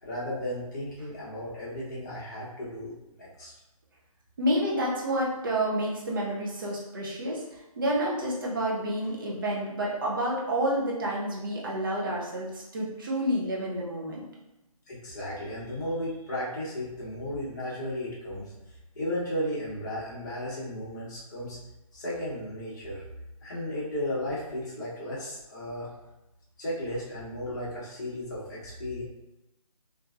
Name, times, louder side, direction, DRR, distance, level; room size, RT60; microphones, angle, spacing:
voice 1, 0.0-3.5 14.9-18.5 19.0-21.6 21.9-23.0 23.4-25.9 26.6-29.0, equal, 30° left, -7 dB, 0.9 m, -34 dB
voice 2, 4.4-14.2, right 1 dB, 35° right, -4 dB, 0.7 m, -29 dB
3.1 x 2.5 x 2.4 m, 0.97 s
figure-of-eight pair, 150°, 19 cm